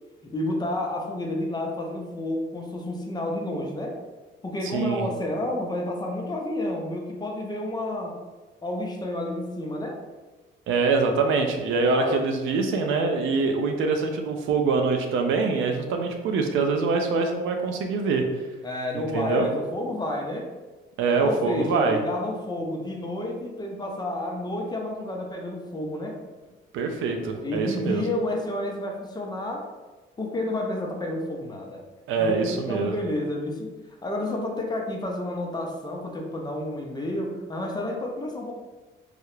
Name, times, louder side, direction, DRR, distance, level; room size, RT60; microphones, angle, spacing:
voice 1, 0.2-4.0 4.4-8.2 8.6-10.0 11.9-12.2 18.6-20.5 21.2-26.2 27.4-29.6 30.2-31.8 32.2-38.5, left 1 dB, 20° left, 1 dB, 0.4 m, -30 dB
voice 2, 4.6-5.0 10.7-18.2 18.9-19.5 21.0-22.0 26.7-28.0 32.1-32.9, right 4 dB, 80° right, 4 dB, 0.4 m, -24 dB
2.3 x 2.0 x 3.0 m, 1.2 s
cardioid pair, 90°, 20 cm